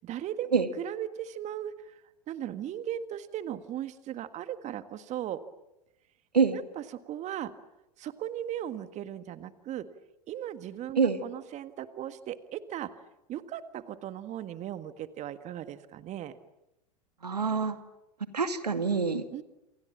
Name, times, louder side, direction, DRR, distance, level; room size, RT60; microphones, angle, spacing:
voice 1, 0.0-0.5 0.8-2.0 2.3-5.4 6.5-7.5 8.0-9.9 10.3-13.0 13.3-16.3 19.3-19.4, right 11 dB, 35° right, 11 dB, 1.6 m, -37 dB
voice 2, 17.2-17.8 18.3-19.2, right 5 dB, 85° right, 9 dB, 2.3 m, -25 dB
28.0 x 28.0 x 7.4 m, 0.92 s
figure-of-eight pair, 90°, 20 cm